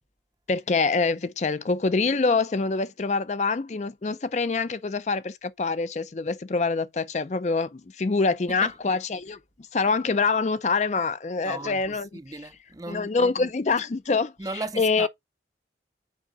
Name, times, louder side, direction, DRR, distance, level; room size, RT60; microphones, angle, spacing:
voice 1, 0.5-9.4 9.7-12.1 12.9-15.1, left 4 dB, 40° left, 0.4 m, -25 dB
voice 2, 11.4-13.5 14.4-15.1, right 2 dB, 20° right, 0.6 m, -36 dB
6.2 x 4.8 x 4.7 m
head